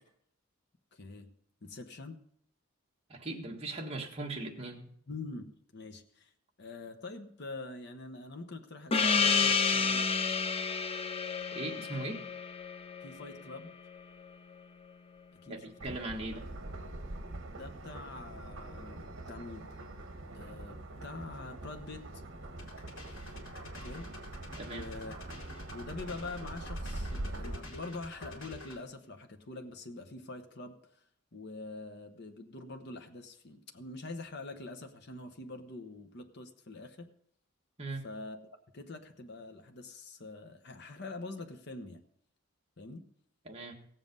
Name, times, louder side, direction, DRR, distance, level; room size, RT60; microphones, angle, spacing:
voice 1, 0.9-1.3 1.6-2.2 5.1-6.3 6.6-10.1 13.0-13.7 15.4-15.5 15.9-16.0 17.4-19.7 20.3-22.0 23.8-24.1 24.7-25.1 25.7-31.0 31.3-37.1 38.0-38.4 38.7-42.0 42.8-43.0, left 3 dB, 55° left, 6 dB, 1.0 m, -45 dB
voice 2, 3.1-4.9 11.5-12.2 15.5-16.4 24.6-24.9 37.8-38.0 43.5-43.7, right 2 dB, 30° right, 0 dB, 1.6 m, -39 dB
Gong, 8.9-14.0, left 5 dB, 30° left, 0.6 m, -30 dB
sound 1, 15.8-27.6, right 1 dB, 60° right, 1.3 m, -43 dB
sound 2, 22.6-28.8, left 1 dB, 75° left, 2.7 m, -48 dB
17.0 x 7.4 x 5.3 m, 0.68 s
head